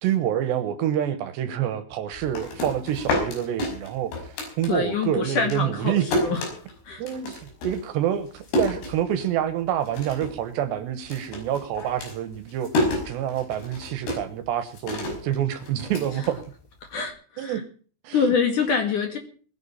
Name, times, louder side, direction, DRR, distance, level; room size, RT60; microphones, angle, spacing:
voice 1, 0.0-6.0 7.0-16.4 17.4-17.6 18.0-18.3, right 10 dB, 70° right, 12 dB, 3.1 m, -27 dB
sound 1, 2.1-5.1 5.4-9.5 9.8-10.4 10.7-16.9, left 1 dB, 85° left, 8.1 m, -30 dB
voice 2, 4.7-6.4 6.8-7.0 16.9-17.6 18.1-19.2, left 5 dB, 50° left, 6 dB, 2.9 m, -25 dB
20.5 x 11.0 x 5.5 m, 0.42 s
omnidirectional pair, 5.7 m